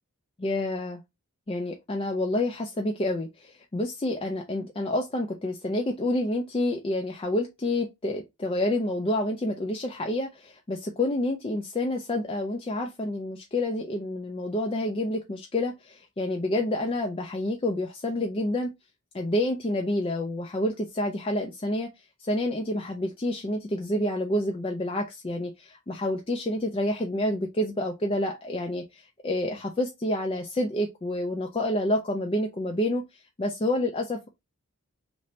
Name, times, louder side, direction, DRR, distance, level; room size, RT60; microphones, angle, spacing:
voice 1, 0.4-1.0 1.5-18.7 19.1-34.3, left 1 dB, 25° left, 0.4 m, -28 dB
3.2 x 2.6 x 3.9 m
head